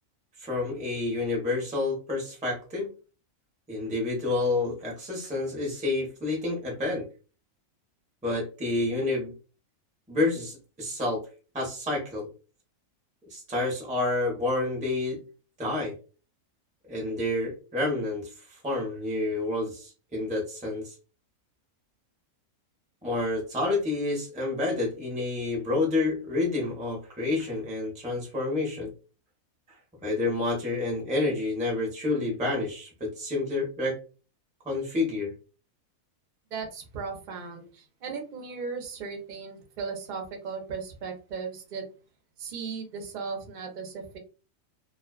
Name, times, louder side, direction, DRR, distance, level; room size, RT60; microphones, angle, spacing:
voice 1, 0.4-2.9 3.7-7.1 8.2-9.3 10.1-11.2 11.5-12.3 13.3-15.2 15.6-15.9 16.9-20.9 23.0-28.9 30.0-34.0 34.6-35.3, left 2 dB, 10° right, -2 dB, 0.6 m, -29 dB
voice 2, 36.5-41.8 42.4-44.2, right 5 dB, 50° right, 2 dB, 0.6 m, -37 dB
2.4 x 2.3 x 2.2 m, 0.35 s
omnidirectional pair, 1.4 m